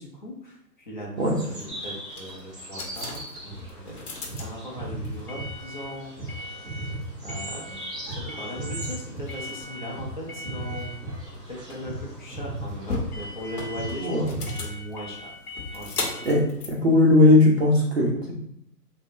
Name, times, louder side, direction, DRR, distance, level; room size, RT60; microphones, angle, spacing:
voice 1, 0.0-4.1 4.4-7.0 7.2-7.8 8.1-11.0 11.5-16.3, equal, 30° left, -3 dB, 0.5 m, -39 dB
sound 1, 1.2-14.4, right 1 dB, 15° right, 0.8 m, -43 dB
sound 2, 1.3-17.8, left 3 dB, 60° left, 0.8 m, -38 dB
sound 3, 3.5-10.2 10.4-11.5 11.8-12.1 12.3-13.4 13.7-14.0 14.2-14.7, right 1 dB, 5° left, 1.1 m, -36 dB
voice 2, 16.7-18.3, left 2 dB, 45° right, -2 dB, 0.4 m, -18 dB
3.7 x 2.0 x 2.5 m, 0.73 s
hypercardioid pair, 150°, 50 cm